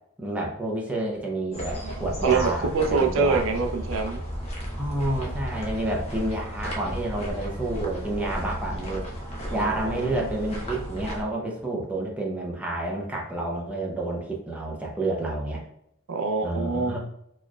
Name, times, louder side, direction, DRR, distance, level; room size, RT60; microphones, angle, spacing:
voice 1, 0.2-3.4 4.8-9.1 9.5-15.6 16.4-17.0, right 2 dB, 5° right, -3 dB, 0.7 m, -29 dB
sound 1, 1.5-11.2, equal, 30° left, 0.9 m, -34 dB
voice 2, 1.8-4.2 9.5-10.3 16.1-16.9, right 4 dB, 65° right, 5 dB, 0.5 m, -26 dB
4.3 x 3.0 x 2.3 m, 0.76 s
head